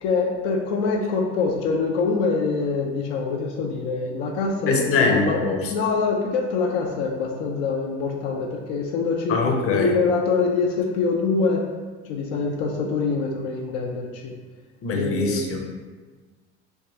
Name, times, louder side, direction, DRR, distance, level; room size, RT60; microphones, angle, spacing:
voice 1, 0.0-5.4 5.7-9.4 9.7-11.7 12.1-14.3 14.9-15.4, left 4 dB, 80° left, 0 dB, 0.5 m, -24 dB
voice 2, 4.7-5.7 9.3-9.9 14.8-15.6, left 3 dB, 40° left, 2 dB, 0.6 m, -22 dB
3.4 x 2.3 x 2.7 m, 1.3 s
hypercardioid pair, 70°, 34 cm